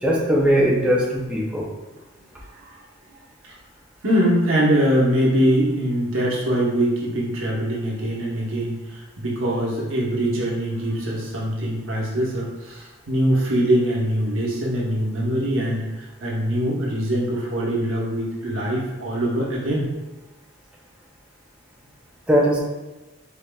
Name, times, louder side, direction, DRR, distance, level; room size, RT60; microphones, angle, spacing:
voice 1, 0.0-1.7 22.3-22.6, equal, 5° right, -4 dB, 0.5 m, -19 dB
voice 2, 4.0-19.9, equal, 80° right, -4 dB, 1.0 m, -23 dB
4.0 x 3.6 x 2.2 m, 1.1 s
head